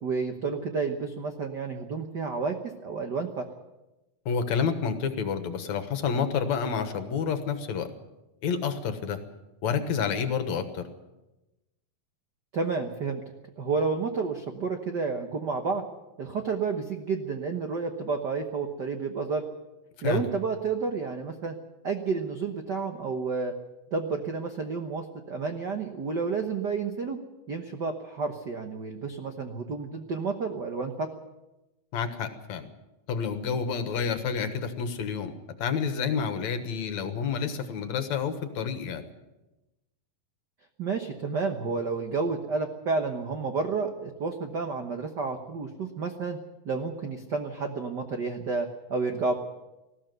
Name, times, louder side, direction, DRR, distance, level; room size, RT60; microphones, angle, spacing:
voice 1, 0.0-3.4 12.5-13.2 13.6-15.8 16.2-19.4 20.0-21.5 21.8-23.5 23.9-27.2 27.5-31.1 40.8-46.4 46.6-49.4, right 4 dB, 80° right, 5 dB, 0.9 m, -30 dB
voice 2, 4.3-7.9 8.4-9.2 9.6-10.8 20.0-20.3 31.9-32.7 33.1-35.3 35.6-39.0, left 6 dB, 65° left, 9 dB, 2.5 m, -29 dB
19.5 x 14.5 x 9.2 m, 1.0 s
omnidirectional pair, 3.8 m